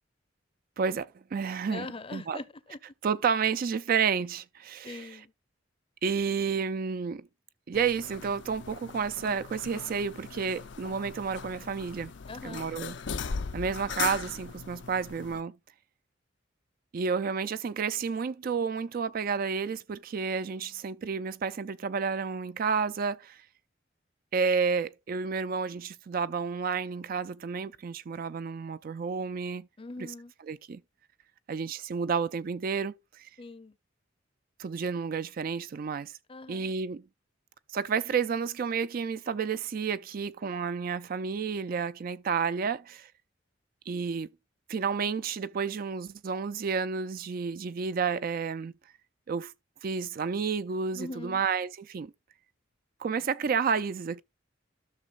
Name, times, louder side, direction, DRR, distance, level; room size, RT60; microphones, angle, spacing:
voice 1, 0.8-1.9 2.1-2.4 3.0-5.1 6.0-7.3 7.7-12.1 12.4-13.0 13.5-15.6 16.9-23.4 24.3-29.7 30.5-30.8 31.5-33.3 34.6-36.1 36.5-37.0 37.7-43.1 43.9-44.3 44.7-48.7 49.3-49.5 49.8-52.1 53.0-54.2, right 6 dB, 50° right, 0.4 m, -31 dB
voice 2, 1.7-2.9 4.8-5.3 12.3-12.7 29.8-30.3 33.4-33.8 36.3-36.7 50.9-51.4, left 3 dB, 30° left, 0.6 m, -42 dB
sound 1, 7.7-15.4, left 6 dB, 65° left, 0.6 m, -39 dB
13.0 x 6.2 x 2.4 m
head